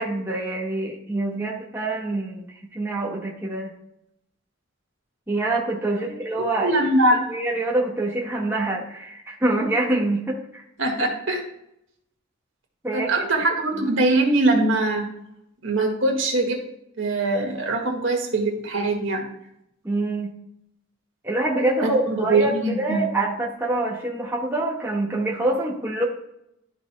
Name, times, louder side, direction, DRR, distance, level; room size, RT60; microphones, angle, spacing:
voice 1, 0.0-2.4 2.7-3.7 5.3-6.8 7.3-10.6 12.8-13.1 13.8-13.9 19.8-20.3 21.2-26.0, right 2 dB, 10° right, -4 dB, 1.5 m, -25 dB
voice 2, 6.5-7.3 10.8-11.4 12.9-15.1 15.6-16.6 17.0-19.2 21.8-23.1, right 2 dB, 65° right, 1 dB, 1.8 m, -22 dB
12.5 x 5.4 x 2.2 m, 0.78 s
head